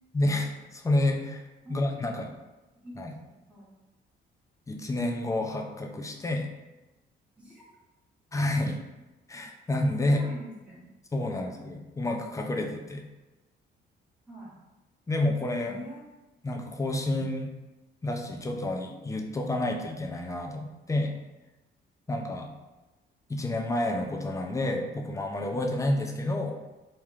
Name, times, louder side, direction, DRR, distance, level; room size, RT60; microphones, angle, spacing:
voice 1, 0.1-1.4 1.7-2.4 3.0-3.1 4.7-6.5 8.3-8.8 9.3-10.3 11.1-13.0 15.1-15.8 16.4-17.5 18.0-21.1 22.1-22.5 23.3-26.6, left 1 dB, 15° left, 2 dB, 0.3 m, -29 dB
voice 2, 1.6-2.2 2.7-3.7 7.4-7.6 10.0-10.9 11.2-11.5 14.3-14.6 15.6-16.0, equal, 5° right, -7 dB, 1.1 m, -46 dB
2.3 x 2.1 x 3.1 m, 1.1 s
cardioid pair, 90°, 20 cm